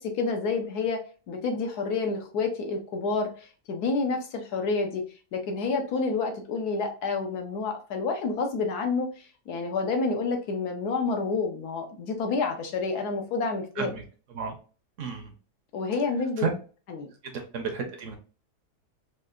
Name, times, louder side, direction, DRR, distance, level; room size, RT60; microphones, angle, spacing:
voice 1, 0.0-5.0 5.3-13.9 15.7-16.4 16.9-17.1, left 4 dB, 75° left, 4 dB, 1.2 m, -29 dB
voice 2, 15.0-15.3 16.4-16.5 17.2-18.2, right 6 dB, 60° right, 4 dB, 0.9 m, -32 dB
4.5 x 2.4 x 2.4 m, 0.37 s
omnidirectional pair, 1.7 m